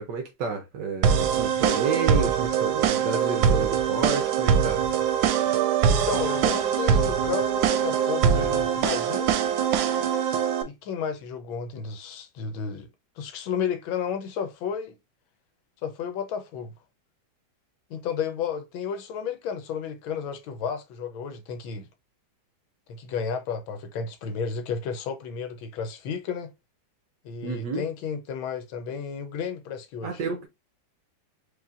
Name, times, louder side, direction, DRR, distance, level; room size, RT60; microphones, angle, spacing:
voice 1, 0.0-4.8 27.4-27.8 30.0-30.5, right 4 dB, 70° right, 1.3 m, -30 dB
sound 1, 1.0-10.6, right 7 dB, 90° right, 1.4 m, -23 dB
voice 2, 5.9-9.3 10.6-12.9 13.2-14.9 15.8-16.7 17.9-21.9 22.9-26.5 27.2-30.2, left 6 dB, 90° left, 1.5 m, -32 dB
4.8 x 2.9 x 2.4 m
omnidirectional pair, 2.1 m